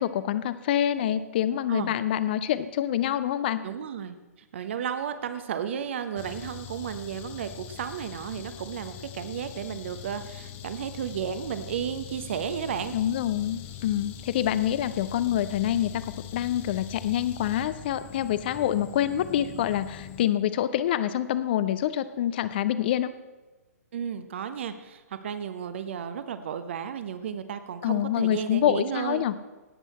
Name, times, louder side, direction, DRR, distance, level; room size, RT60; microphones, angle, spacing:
voice 1, 0.0-3.6 12.9-23.1 27.8-29.3, left 11 dB, 35° left, 14 dB, 0.6 m, -26 dB
voice 2, 3.6-4.2 4.5-12.9 23.9-29.3, right 8 dB, 45° right, 10 dB, 0.9 m, -33 dB
sound 1, 6.2-20.3, left 9 dB, 20° left, 1.0 m, -42 dB
18.0 x 8.1 x 4.3 m, 1.2 s
figure-of-eight pair, 125°, 9 cm